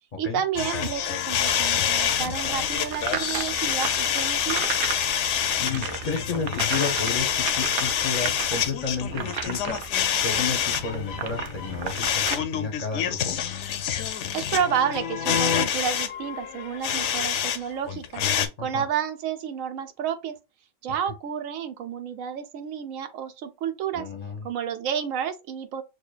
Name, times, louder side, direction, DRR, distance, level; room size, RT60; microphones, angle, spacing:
voice 1, 0.2-4.6 14.3-20.4 20.8-24.1 24.4-25.8, right 8 dB, 85° right, 1.0 m, -30 dB
sound 1, 0.5-17.6 17.9-18.5, left 9 dB, 70° left, 0.8 m, -27 dB
sound 2, 1.4-12.3, right 7 dB, 55° right, 0.6 m, -35 dB
voice 2, 5.6-9.8 10.2-13.4 18.6-18.8 23.9-24.4, left 5 dB, 40° left, 0.7 m, -32 dB
6.5 x 2.2 x 2.3 m
omnidirectional pair, 1.4 m